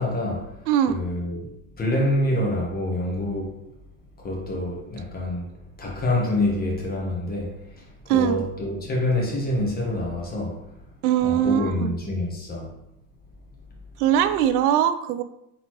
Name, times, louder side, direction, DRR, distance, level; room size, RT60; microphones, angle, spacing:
voice 1, 0.0-0.6 0.9-1.5 1.8-3.5 4.2-10.7 11.2-12.7, left 1 dB, 20° left, 1.4 m, -26 dB
voice 2, 0.7-1.0 8.1-8.4 11.0-11.9 14.0-15.2, right 10 dB, 80° right, 0.6 m, -21 dB
4.0 x 3.9 x 3.1 m
supercardioid pair, 120°, 44 cm